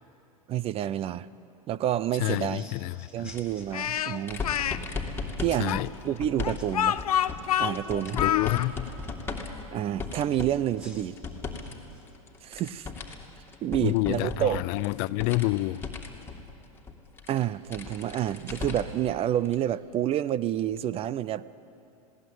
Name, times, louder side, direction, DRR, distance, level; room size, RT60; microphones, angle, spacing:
voice 1, 0.5-1.3 1.7-2.7 3.1-4.4 5.4-7.0 7.6-8.2 9.7-11.2 12.4-12.9 13.6-14.6 17.3-21.4, right 11 dB, 30° right, 0.5 m, -29 dB
voice 2, 2.2-3.3 5.6-5.9 8.1-8.9 13.8-15.9, left 20 dB, 45° left, 0.5 m, -28 dB
sound 1, 2.2-4.7 6.6-6.8 7.3-8.1 10.3-12.1, left 1 dB, 5° right, 3.0 m, -53 dB
sound 2, 3.2-11.7 12.0-19.0 19.4-19.6 20.8-20.9, left 4 dB, 10° left, 2.7 m, -38 dB
Speech, 3.7-4.8 5.7-8.7, left 10 dB, 85° left, 0.7 m, -27 dB
20.0 x 18.0 x 9.4 m
hypercardioid pair, 105°, 19 cm